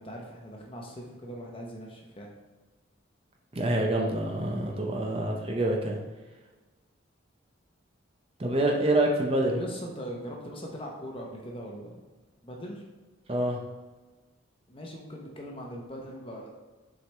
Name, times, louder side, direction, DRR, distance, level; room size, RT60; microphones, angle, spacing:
voice 1, 0.0-2.3 9.4-11.9 12.4-12.8 14.7-16.5, equal, 25° left, -1 dB, 0.9 m, -40 dB
voice 2, 3.5-6.0 8.4-9.6 13.3-13.6, right 1 dB, 30° right, 0 dB, 0.6 m, -26 dB
6.3 x 4.7 x 3.4 m, 1.2 s
head